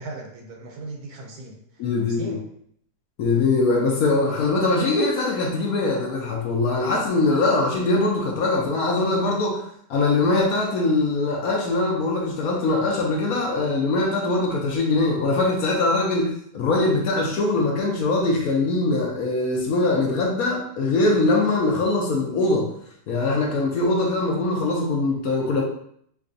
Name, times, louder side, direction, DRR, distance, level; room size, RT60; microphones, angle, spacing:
voice 1, 0.0-1.6 2.0-2.5, right 2 dB, 70° right, 1 dB, 1.1 m, -37 dB
voice 2, 1.8-2.4 3.2-9.6 9.9-22.7 23.1-25.6, left 2 dB, 65° left, -1 dB, 1.0 m, -22 dB
4.7 x 2.2 x 2.6 m, 0.68 s
omnidirectional pair, 1.8 m